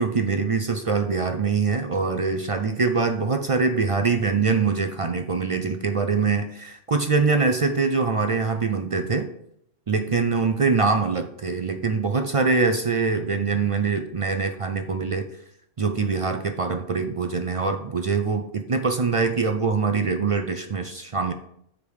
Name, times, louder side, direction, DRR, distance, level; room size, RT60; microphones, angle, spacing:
voice 1, 0.0-9.3 9.9-15.2 15.8-21.3, right 4 dB, 55° right, 6 dB, 0.3 m, -23 dB
7.1 x 5.1 x 4.8 m, 0.72 s
omnidirectional pair, 1.2 m